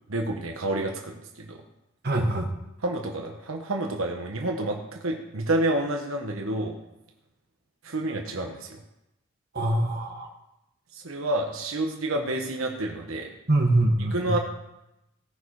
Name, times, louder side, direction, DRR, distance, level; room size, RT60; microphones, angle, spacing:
voice 1, 0.1-1.6 2.8-6.7 7.8-8.7 10.9-13.3 14.1-14.4, right 1 dB, 80° right, 2 dB, 1.2 m, -29 dB
voice 2, 2.0-2.5 9.5-10.3 13.5-14.4, right 1 dB, 50° right, 2 dB, 1.7 m, -24 dB
17.0 x 6.4 x 4.8 m, 0.90 s
head